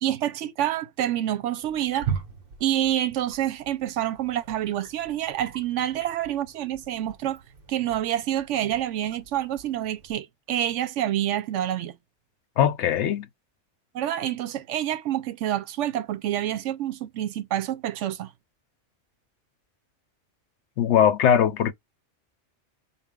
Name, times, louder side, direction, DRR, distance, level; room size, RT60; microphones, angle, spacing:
voice 1, 0.0-2.1 2.6-7.4 7.7-12.0 13.9-18.3, right 12 dB, 80° right, 0.9 m, -27 dB
Wild animals, 1.6-10.1, right 7 dB, 55° right, 0.9 m, -40 dB
voice 2, 12.6-13.3 20.8-21.7, left 9 dB, 75° left, 0.9 m, -20 dB
4.1 x 2.3 x 3.6 m
omnidirectional pair, 1.2 m